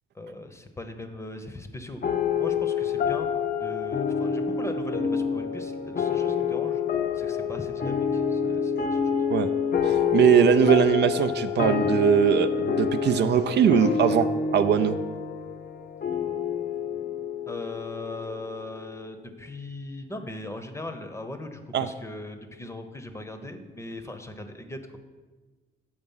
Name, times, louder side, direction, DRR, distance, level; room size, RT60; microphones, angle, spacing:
voice 1, 0.1-6.8 7.1-9.3 17.5-25.0, left 2 dB, 15° left, 7 dB, 0.7 m, -39 dB
sound 1, 2.0-18.8, left 6 dB, 50° left, 0.7 m, -27 dB
voice 2, 9.8-15.0 21.7-21.9, right 9 dB, 60° right, 9 dB, 0.4 m, -21 dB
7.1 x 4.8 x 5.5 m, 1.3 s
cardioid pair, 90°, 20 cm